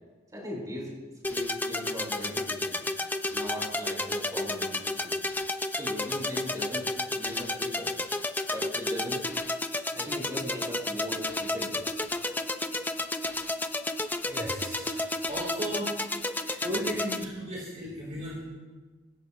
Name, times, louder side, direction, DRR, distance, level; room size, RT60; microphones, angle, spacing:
voice 1, 0.3-0.9 1.3-2.8 3.3-5.2 5.7-7.9 8.5-9.2 9.9-11.8, left 1 dB, 20° right, -5 dB, 7.2 m, -38 dB
sound 1, 1.2-17.2, left 2 dB, 10° left, 0.7 m, -32 dB
voice 2, 12.5-16.0 16.4-18.4, equal, 40° right, -6 dB, 4.5 m, -37 dB
27.0 x 15.5 x 3.2 m, 1.3 s
head